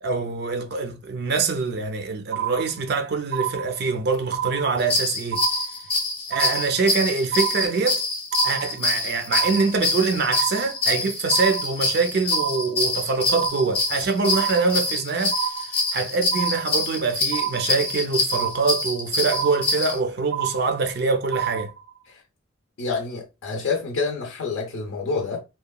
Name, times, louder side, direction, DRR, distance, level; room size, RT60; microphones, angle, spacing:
voice 1, 0.0-5.4 6.3-8.0 8.4-21.7, right 4 dB, 55° right, 0.4 m, -24 dB
sound 1, 2.3-3.0 3.3-4.0 4.3-5.0 5.3-6.0 6.3-7.0 7.3-8.0 8.3-9.0 9.3-10.0 10.3-11.0 11.3-12.0 12.3-13.0 13.3-14.0 14.3-15.0 15.3-16.0 16.3-17.0 17.3-18.0 18.3-19.0 19.3-20.0 20.3-21.0 21.3-22.0, right 10 dB, 90° right, 0.7 m, -29 dB
sound 2, 4.8-20.0, left 3 dB, 30° left, 0.6 m, -26 dB
voice 2, 22.8-25.4, left 4 dB, 70° left, 0.5 m, -28 dB
2.8 x 2.2 x 2.2 m
head